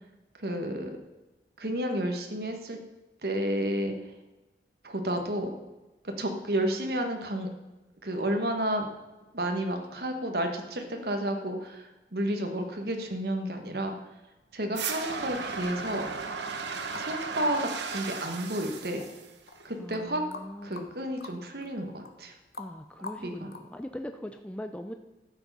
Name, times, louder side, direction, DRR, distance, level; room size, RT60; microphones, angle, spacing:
voice 1, 0.4-1.0 1.6-2.8 3.2-4.0 4.8-5.5 6.0-7.5 8.0-8.9 9.3-13.9 14.5-16.1 16.9-19.0 19.6-20.2 20.6-22.3 23.2-23.5, right 1 dB, 60° right, 4 dB, 1.5 m, -31 dB
sound 1, 14.7-19.8, right 5 dB, 85° right, 1.1 m, -35 dB
sound 2, 15.9-17.2 17.5-23.8, left 3 dB, 65° left, 1.1 m, -46 dB
voice 2, 19.8-20.9 22.6-24.9, left 1 dB, 5° left, 6 dB, 0.4 m, -41 dB
13.0 x 7.4 x 5.5 m, 1.1 s
head